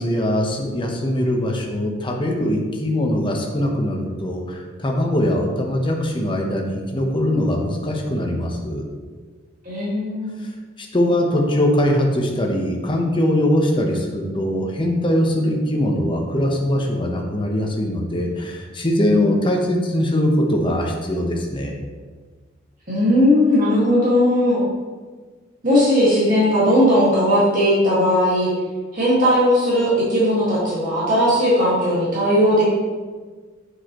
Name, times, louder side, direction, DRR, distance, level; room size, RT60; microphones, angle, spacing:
voice 1, 0.0-8.9 10.4-10.5 10.8-21.8, left 1 dB, 25° left, 1 dB, 0.9 m, -21 dB
voice 2, 9.6-10.4 22.9-24.6 25.6-28.5 28.9-32.6, equal, 45° right, -8 dB, 1.9 m, -17 dB
7.5 x 6.5 x 3.0 m, 1.4 s
head